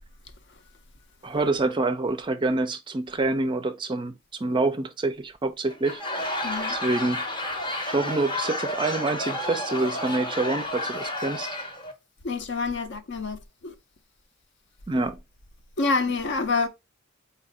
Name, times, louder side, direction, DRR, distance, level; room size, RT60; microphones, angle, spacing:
voice 1, 1.2-7.2 7.9-11.5 14.9-15.2, right 2 dB, 25° right, 0.4 m, -27 dB
Laughter / Crowd, 5.7-11.9, left 1 dB, 20° left, 0.8 m, -31 dB
voice 2, 6.4-6.8 12.2-13.4 13.6-13.7 15.8-16.7, left 4 dB, 55° left, 0.6 m, -27 dB
4.1 x 2.5 x 4.1 m
head